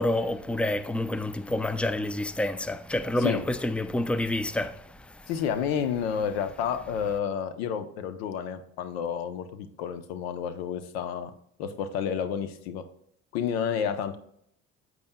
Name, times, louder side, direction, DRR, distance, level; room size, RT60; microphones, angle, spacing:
voice 1, 0.0-5.2, left 1 dB, 5° left, 0.6 m, -28 dB
voice 2, 5.3-11.3 11.6-12.8 13.3-14.2, left 7 dB, 90° left, 0.8 m, -30 dB
8.7 x 7.8 x 2.2 m
hypercardioid pair, 65°, 30 cm